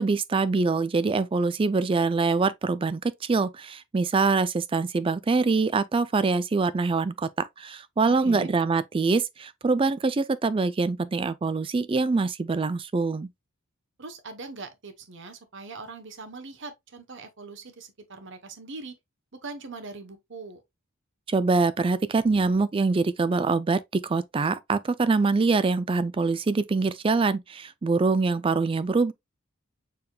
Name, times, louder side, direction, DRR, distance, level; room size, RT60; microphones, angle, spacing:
voice 1, 0.0-13.3 21.3-29.1, right 4 dB, 25° right, 0.3 m, -24 dB
voice 2, 8.1-8.5 14.0-19.0 19.3-20.6, right 3 dB, 55° right, 0.9 m, -41 dB
6.8 x 3.5 x 2.2 m
head